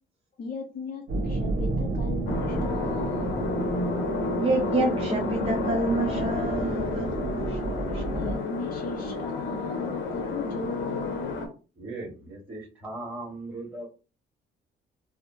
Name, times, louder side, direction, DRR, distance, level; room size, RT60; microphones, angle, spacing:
voice 1, 0.4-3.5 8.1-11.4, left 4 dB, 40° left, 0.6 m, -37 dB
sound 1, 1.1-8.4, right 2 dB, 70° right, 1.0 m, -31 dB
sound 2, 2.2-11.5, left 3 dB, 80° left, 0.9 m, -31 dB
voice 2, 4.4-7.1 7.4-8.3, right 2 dB, 30° right, 0.6 m, -28 dB
voice 3, 11.7-13.9, right 2 dB, 10° right, 1.6 m, -38 dB
3.5 x 2.1 x 2.6 m
cardioid pair, 90°, 20 cm